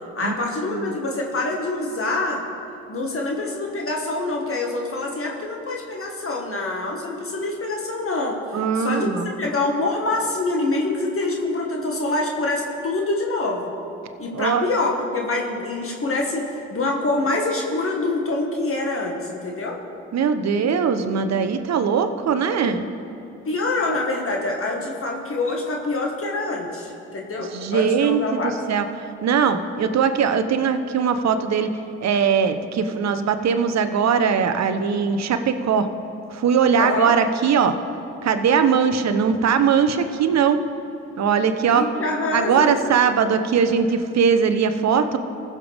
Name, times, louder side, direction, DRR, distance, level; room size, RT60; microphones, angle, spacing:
voice 1, 0.2-2.4 2.9-8.4 8.8-9.1 9.4-13.7 14.2-19.8 23.5-28.6 36.8-37.1 41.7-42.8, left 2 dB, 40° left, 0 dB, 1.9 m, -25 dB
voice 2, 8.5-9.3 14.3-14.7 20.1-22.8 27.5-28.9 29.2-31.7 32.0-35.9 36.3-37.8 38.2-40.6 41.2-41.9 42.3-45.2, right 6 dB, 50° right, 9 dB, 1.0 m, -20 dB
20.5 x 6.9 x 3.6 m, 2.8 s
hypercardioid pair, 50°, 34 cm